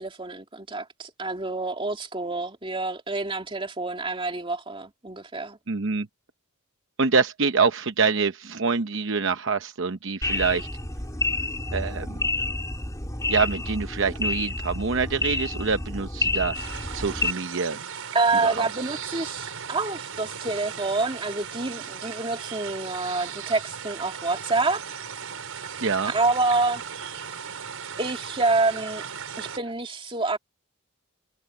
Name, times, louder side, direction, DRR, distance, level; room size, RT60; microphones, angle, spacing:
voice 1, 0.0-5.6 18.1-24.8 26.1-26.8 28.0-29.1 29.4-30.4, right 3 dB, 25° right, 2.5 m, -27 dB
voice 2, 5.7-6.1 7.0-10.7 11.7-12.1 13.3-17.8 18.4-18.7 25.8-26.1, right 4 dB, 60° right, 0.9 m, -25 dB
sound 1, 10.2-17.3, left 2 dB, 15° left, 3.5 m, -29 dB
sound 2, 16.5-29.6, right 7 dB, 85° right, 5.3 m, -37 dB
head